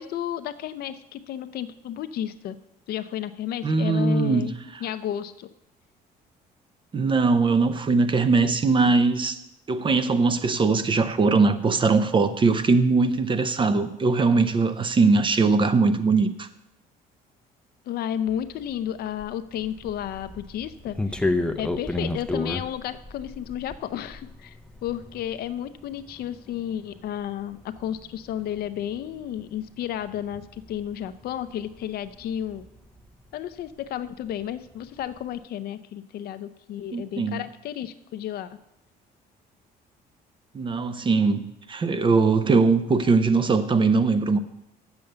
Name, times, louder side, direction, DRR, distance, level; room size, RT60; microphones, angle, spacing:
voice 1, 0.0-2.6 2.9-4.5 4.8-5.5 17.9-21.2 21.6-24.6 24.8-32.6 33.3-38.6, left 10 dB, 65° left, 0.6 m, -32 dB
voice 2, 3.6-4.5 6.9-9.4 9.7-16.5 36.9-37.4 40.5-44.4, right 4 dB, 30° right, 0.7 m, -21 dB
sound 1, 18.3-33.8 34.1-35.3, left 2 dB, 5° left, 0.5 m, -34 dB
7.7 x 7.1 x 6.7 m
cardioid pair, 110°, 17 cm